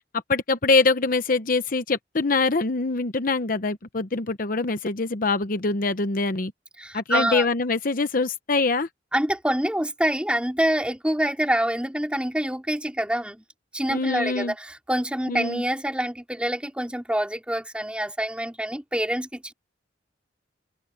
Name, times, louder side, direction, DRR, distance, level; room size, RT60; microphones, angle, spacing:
voice 1, 0.3-6.5 6.9-8.9 13.9-14.5 15.3-15.6, left 3 dB, 50° left, 0.9 m, -24 dB
voice 2, 6.8-7.4 9.1-13.4 13.7-19.5, right 1 dB, 5° right, 3.1 m, -26 dB
open air
head